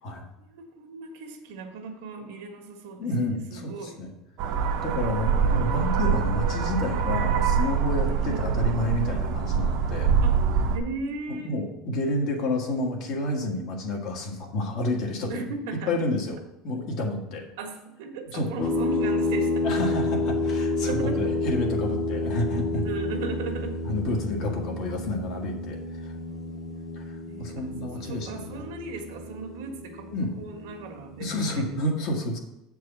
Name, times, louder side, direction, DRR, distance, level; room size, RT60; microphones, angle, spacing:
voice 1, 0.4-4.0 5.1-5.7 8.2-8.4 10.2-10.3 10.7-11.5 15.3-15.9 17.6-19.7 20.8-21.4 22.8-23.8 24.4-24.6 27.3-31.9, right 4 dB, 85° right, 3 dB, 1.6 m, -37 dB
voice 2, 3.0-4.1 4.8-10.1 11.3-15.3 15.9-16.4 16.6-17.5 18.3-18.7 19.6-22.9 23.8-26.1 26.9-28.7 30.1-30.3 31.2-32.4, left 1 dB, 45° left, 2 dB, 1.6 m, -30 dB
sound 1, 4.4-10.8, right 6 dB, 55° right, 0.9 m, -24 dB
sound 2, 18.6-31.7, left 2 dB, 30° left, 1.2 m, -30 dB
8.1 x 4.7 x 7.0 m, 0.90 s
cardioid pair, 175°, 0 cm